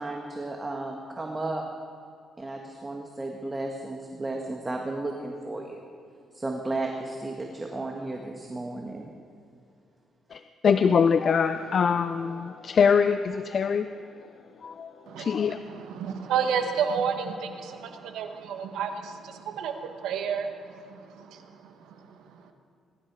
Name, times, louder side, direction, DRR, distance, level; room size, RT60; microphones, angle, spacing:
voice 1, 0.0-1.6 2.4-5.8 6.3-9.1, right 2 dB, 20° right, 1 dB, 1.6 m, -34 dB
voice 2, 10.3-13.9 14.6-14.9 15.2-15.6, left 6 dB, 50° left, 10 dB, 0.5 m, -23 dB
voice 3, 15.1-22.5, right 7 dB, 85° right, 6 dB, 1.4 m, -32 dB
21.0 x 12.5 x 4.8 m, 2.5 s
cardioid pair, 90°, 0 cm